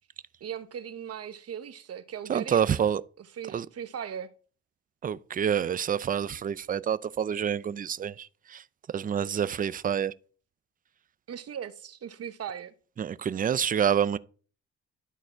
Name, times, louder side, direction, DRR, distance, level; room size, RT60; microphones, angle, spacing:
voice 1, 0.4-2.9 3.2-4.3 11.3-12.7, right 8 dB, 55° right, 0.9 m, -38 dB
voice 2, 2.3-3.0 3.5-3.7 5.0-8.6 8.9-10.1 13.0-14.2, right 8 dB, 30° right, 0.4 m, -27 dB
12.0 x 4.1 x 4.5 m
cardioid pair, 90°, 30 cm